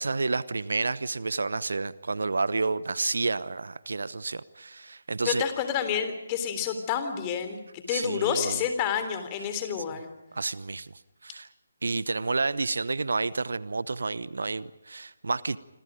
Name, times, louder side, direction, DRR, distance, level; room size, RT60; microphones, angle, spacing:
voice 1, 0.0-5.4 7.9-8.6 10.3-10.9 11.2-11.5 11.8-15.6, right 3 dB, 65° right, 19 dB, 0.9 m, -30 dB
voice 2, 5.2-10.1, left 8 dB, 20° left, 8 dB, 3.5 m, -29 dB
28.5 x 26.0 x 5.1 m, 0.95 s
figure-of-eight pair, 145°, 0 cm